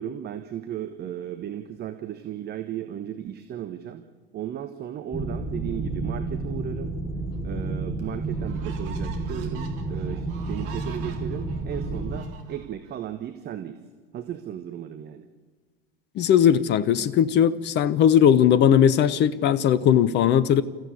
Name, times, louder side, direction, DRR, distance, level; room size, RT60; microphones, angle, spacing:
voice 1, 0.0-4.0 4.3-6.9 7.4-13.8 14.1-15.3, right 10 dB, 35° right, 1.3 m, -35 dB
sound 1, 5.1-12.2, right 3 dB, 15° left, 3.2 m, -31 dB
sound 2, 7.3-7.4 8.0-12.9, right 7 dB, 50° right, 3.5 m, -46 dB
voice 2, 16.2-20.6, left 9 dB, 35° left, 1.0 m, -19 dB
30.0 x 14.5 x 8.5 m
figure-of-eight pair, 75°, 29 cm